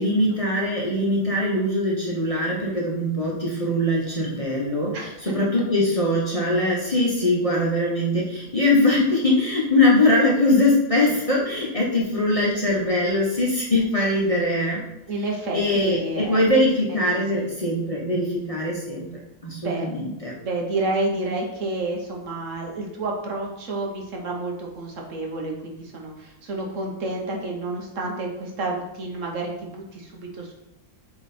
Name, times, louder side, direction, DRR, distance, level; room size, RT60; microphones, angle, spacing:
voice 1, 0.0-5.0 5.2-14.8 15.5-19.1 19.4-20.3, left 1 dB, 25° left, -5 dB, 0.9 m, -22 dB
voice 2, 15.1-16.4 16.9-17.5 19.6-19.9 20.4-30.5, right 2 dB, 60° right, 0 dB, 1.3 m, -30 dB
7.2 x 3.1 x 4.2 m, 0.90 s
omnidirectional pair, 1.6 m